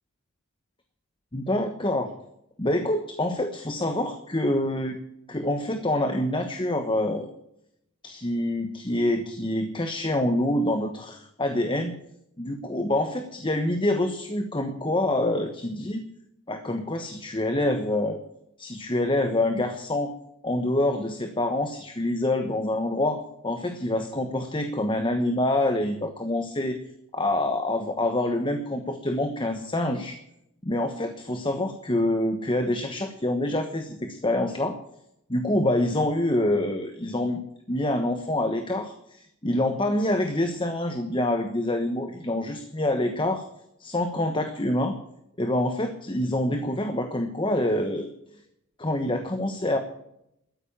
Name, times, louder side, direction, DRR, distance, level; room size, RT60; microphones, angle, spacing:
voice 1, 1.3-2.1 2.6-5.0 5.3-7.3 8.0-11.9 12.4-16.0 16.5-18.2 18.6-20.1 20.4-26.8 27.1-30.2 30.6-34.8 35.3-43.4 43.8-45.0 45.4-48.1 48.8-49.8, left 1 dB, 25° left, 7 dB, 1.2 m, -26 dB
13.5 x 10.0 x 8.8 m, 0.78 s
head